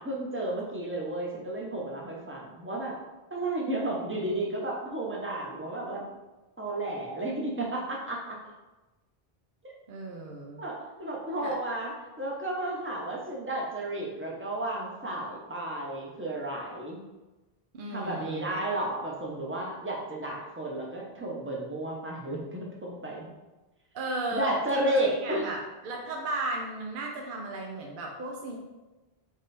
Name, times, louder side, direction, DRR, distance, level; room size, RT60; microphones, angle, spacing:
voice 1, 0.0-3.0 3.3-6.0 6.6-8.4 10.6-17.0 17.9-23.2 24.3-25.5, right 1 dB, 15° right, -2 dB, 0.7 m, -32 dB
voice 2, 9.9-10.6 11.4-11.5 17.7-18.6 23.9-28.6, right 2 dB, 65° right, 0 dB, 0.8 m, -35 dB
3.7 x 3.2 x 4.1 m, 1.1 s
omnidirectional pair, 1.0 m